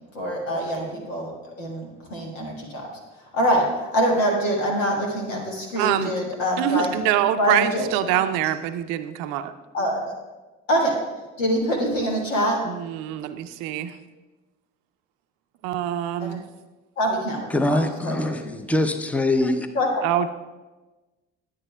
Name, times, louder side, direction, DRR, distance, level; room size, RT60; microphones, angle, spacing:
voice 1, 0.1-1.3 1.6-2.9 3.3-6.9 7.4-8.2 9.7-10.0 10.7-10.9 11.4-12.6 16.2-16.4 17.0-17.8 18.0-18.3 19.7-20.0, equal, 85° left, 0 dB, 1.5 m, -24 dB
voice 2, 5.8-6.1 6.6-9.5 12.7-13.9 15.6-16.4 20.0-20.3, right 11 dB, 70° right, 12 dB, 0.5 m, -25 dB
voice 3, 17.5-19.7, left 1 dB, 5° left, 8 dB, 0.6 m, -23 dB
9.9 x 9.8 x 2.2 m, 1.2 s
hypercardioid pair, 55°, 37 cm